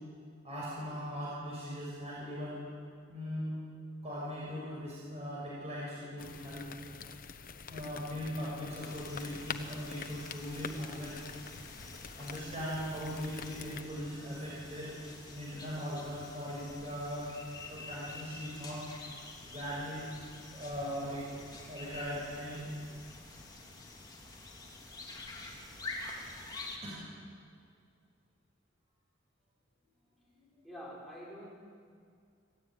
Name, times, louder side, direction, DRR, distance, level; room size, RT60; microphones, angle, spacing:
voice 1, 0.4-2.6 3.1-3.5 4.0-6.6 7.7-11.2 12.2-14.9 15.3-17.3 17.7-18.8 19.4-20.0 20.5-21.2 21.7-22.7 26.8-27.0 30.3-30.5, equal, 35° right, -7 dB, 6.8 m, -39 dB
sound 1, 6.2-13.8, left 5 dB, 45° left, 1.1 m, -46 dB
sound 2, 8.8-26.8, left 2 dB, 20° left, 3.7 m, -48 dB
voice 2, 30.6-31.5, equal, ahead, -5 dB, 6.3 m, -46 dB
26.5 x 16.0 x 9.3 m, 2.3 s
head